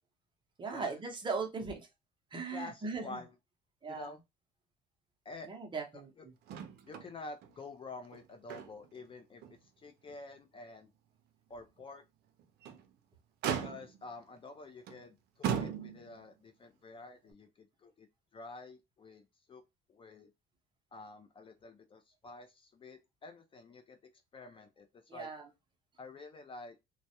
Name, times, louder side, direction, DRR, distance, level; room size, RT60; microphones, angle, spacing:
voice 1, 0.6-1.9 2.3-3.2 3.8-4.1 5.5-6.1 25.1-25.4, right 4 dB, 30° right, 0.7 m, -38 dB
voice 2, 2.5-3.4 3.9-4.2 5.3-5.5 5.9-6.2 6.8-10.9 11.5-12.0 13.6-18.1 18.3-19.6 19.9-20.3 20.9-24.0 24.3-25.3 26.0-26.8, left 3 dB, 30° left, 0.4 m, -49 dB
Motor vehicle (road), 6.5-7.1 7.4-7.5 8.0-9.0 9.4-9.5 10.1-10.2 12.4-12.9 13.4-14.1 14.9-15.0 15.4-16.2 17.3-17.4, right 8 dB, 70° right, 0.5 m, -37 dB
2.3 x 2.0 x 2.8 m
cardioid pair, 110°, 17 cm